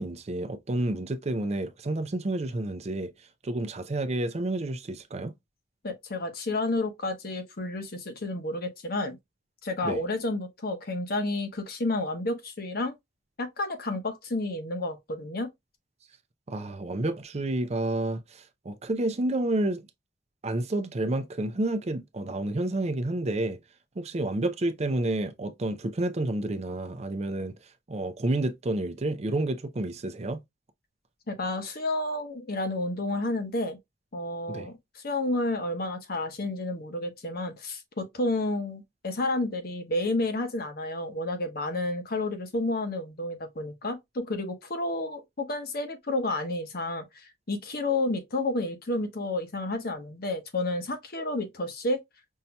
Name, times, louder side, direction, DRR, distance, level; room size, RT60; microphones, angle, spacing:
voice 1, 0.0-3.1 3.4-5.3 9.8-10.0 16.5-19.8 20.4-23.6 24.0-27.5 27.9-30.4 34.5-34.7, right 2 dB, 35° right, 0.5 m, -30 dB
voice 2, 5.8-9.2 9.6-12.9 13.4-15.5 31.3-33.8 34.1-47.0 47.5-52.0, left 2 dB, 55° left, 1.0 m, -30 dB
5.5 x 2.8 x 2.2 m
head